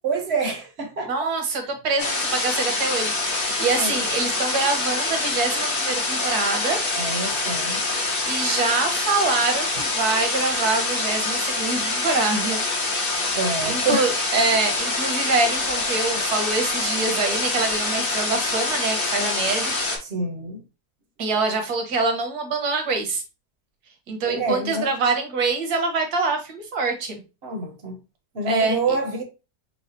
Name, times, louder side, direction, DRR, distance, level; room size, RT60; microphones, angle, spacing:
voice 1, 0.0-1.3 3.3-4.0 7.0-7.8 13.3-14.1 20.0-20.6 24.2-24.9 27.4-28.0 28.3-29.2, right 3 dB, 50° right, 1.0 m, -27 dB
voice 2, 1.1-3.1 3.6-6.8 8.2-12.6 13.6-19.7 21.2-23.2 24.1-27.2 28.5-28.8, right 3 dB, 75° right, 1.6 m, -25 dB
sound 1, 2.0-20.0, left 3 dB, 40° left, 1.1 m, -25 dB
6.3 x 2.4 x 2.7 m
omnidirectional pair, 1.7 m